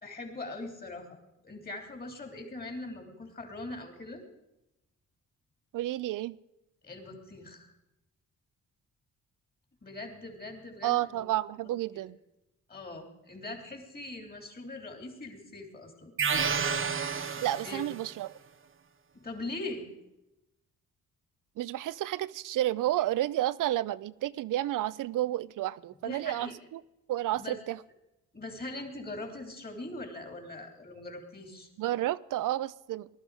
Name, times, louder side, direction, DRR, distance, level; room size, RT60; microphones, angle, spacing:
voice 1, 0.0-1.2 1.4-4.2 6.8-7.7 9.8-11.2 12.7-16.1 17.4-17.8 19.1-19.9 25.9-26.5 27.3-27.6 28.3-31.7, left 2 dB, 30° left, 3.2 m, -41 dB
voice 2, 5.7-6.4 10.8-12.2 17.2-18.4 21.6-26.8 27.1-27.8 31.8-33.1, right 14 dB, 80° right, 0.5 m, -31 dB
sound 1, 16.2-18.1, right 6 dB, 40° right, 1.2 m, -30 dB
19.0 x 12.0 x 4.9 m
cardioid pair, 105°, 31 cm